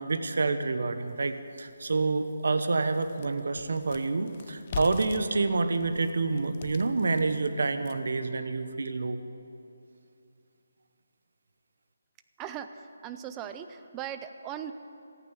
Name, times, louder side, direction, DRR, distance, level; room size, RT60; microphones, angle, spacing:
voice 1, 0.0-9.2, right 3 dB, 65° right, 9 dB, 1.0 m, -28 dB
sound 1, 1.1-1.2 1.7-1.8 2.2-8.2, left 7 dB, 30° left, 0.6 m, -44 dB
voice 2, 12.4-14.7, right 9 dB, 15° right, 9 dB, 0.5 m, -39 dB
14.5 x 9.1 x 8.2 m, 2.7 s
hypercardioid pair, 170°, 0 cm